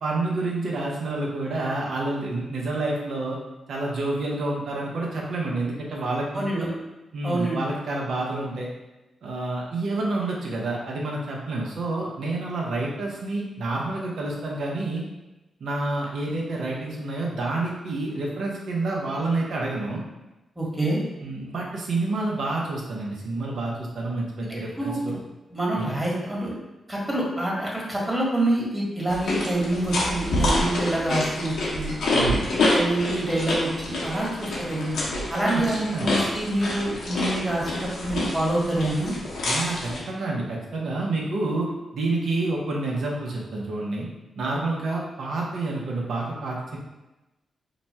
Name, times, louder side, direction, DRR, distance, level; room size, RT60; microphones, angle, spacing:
voice 1, 0.0-3.4 3.7-6.7 7.1-8.7 9.2-15.0 15.6-20.0 21.2-25.1 25.8-25.9 32.1-32.5 35.4-35.6 35.9-36.2 39.5-41.7 41.9-44.1 44.4-46.8, right 2 dB, 75° right, -2 dB, 0.8 m, -28 dB
voice 2, 6.3-6.7 7.2-7.6 20.6-21.0 24.7-25.2 25.5-26.5 26.9-31.9 32.5-35.0 35.3-39.1, right 1 dB, 20° right, -4 dB, 1.4 m, -26 dB
sound 1, 29.1-40.0, left 1 dB, 80° left, 0.9 m, -27 dB
3.0 x 2.3 x 4.1 m, 1.0 s
cardioid pair, 55°, 0 cm